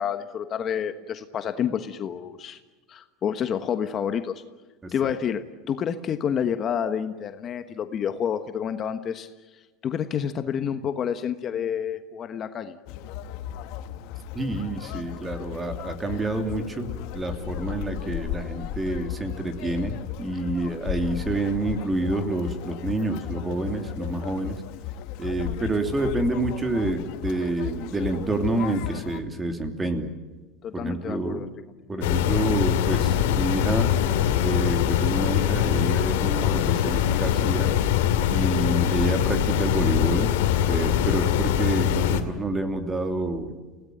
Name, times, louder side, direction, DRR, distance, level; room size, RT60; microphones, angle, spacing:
voice 1, 0.0-2.6 2.9-4.4 4.9-9.3 9.8-12.8 30.6-31.5, left 8 dB, 35° left, 9 dB, 1.2 m, -29 dB
voice 2, 4.8-5.1 14.3-16.9 17.1-24.6 25.2-30.1 30.7-31.5 31.9-33.9 34.4-37.7 38.3-40.3 40.7-43.5, right 2 dB, 15° right, 6 dB, 2.8 m, -28 dB
Conversation, 12.9-29.2, left 11 dB, 60° left, 1.5 m, -35 dB
sound 1, 32.0-42.2, left 10 dB, 85° left, 2.5 m, -23 dB
29.0 x 18.0 x 9.1 m, 1.3 s
supercardioid pair, 140°, 0 cm